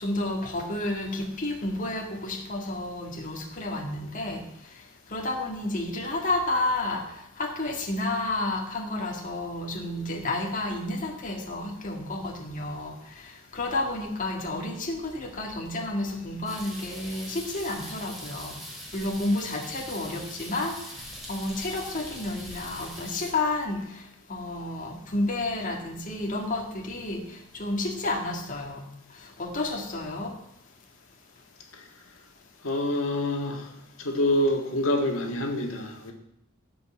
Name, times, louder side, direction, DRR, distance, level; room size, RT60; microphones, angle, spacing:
voice 1, 0.0-4.5 5.1-18.5 18.9-28.8 29.2-30.4, left 2 dB, 40° left, 0 dB, 2.0 m, -31 dB
sound 1, 16.5-23.3, equal, ahead, 3.3 m, -42 dB
voice 2, 32.6-33.7 34.0-36.1, left 1 dB, 90° left, 2 dB, 1.9 m, -26 dB
16.0 x 5.6 x 7.6 m, 0.79 s
head